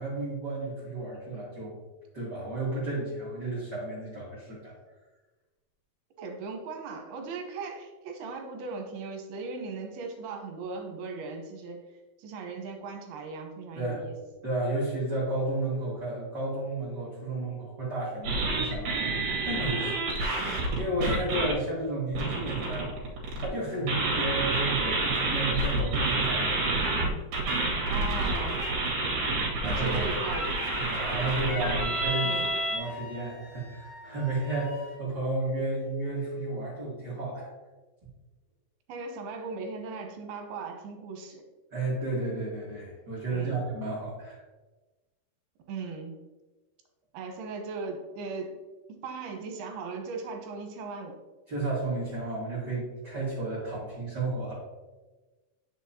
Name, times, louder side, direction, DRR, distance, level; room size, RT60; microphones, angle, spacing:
voice 1, 0.0-1.8 2.1-4.7 13.7-14.0 14.4-22.9 23.4-26.8 29.6-30.0 30.8-32.3 32.7-37.5 41.7-44.4 51.5-54.5, right 2 dB, 40° right, -8 dB, 1.5 m, -32 dB
voice 2, 6.2-11.9 12.2-14.2 27.9-28.7 29.7-30.5 32.2-32.5 38.9-41.4 43.3-43.6 45.7-46.3 47.1-48.5 48.9-51.2, right 4 dB, 75° right, 3 dB, 2.9 m, -38 dB
sound 1, 18.2-21.5 22.1-23.5 23.9-32.8, right 2 dB, 60° right, 2.9 m, -28 dB
Wind instrument woodwind instrument, 29.9-35.1, left 3 dB, 80° left, 3.1 m, -45 dB
9.1 x 6.2 x 2.8 m, 1.2 s
omnidirectional pair, 4.7 m